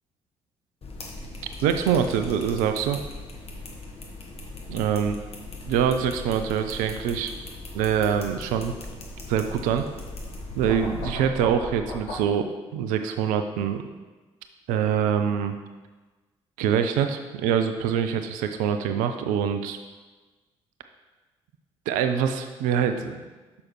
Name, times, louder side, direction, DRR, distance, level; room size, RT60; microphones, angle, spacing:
sound 1, 0.8-11.2, left 2 dB, 40° left, 1.4 m, -39 dB
voice 1, 1.6-3.0 4.7-5.1 5.7-7.3 7.7-8.7 9.3-9.8 10.6-13.8 14.7-15.6 16.6-19.8 21.9-23.2, right 8 dB, 65° right, 8 dB, 0.5 m, -24 dB
sound 2, 9.1-12.2, left 1 dB, 60° left, 1.3 m, -39 dB
8.4 x 6.4 x 3.1 m, 1.2 s
figure-of-eight pair, 45°, 15 cm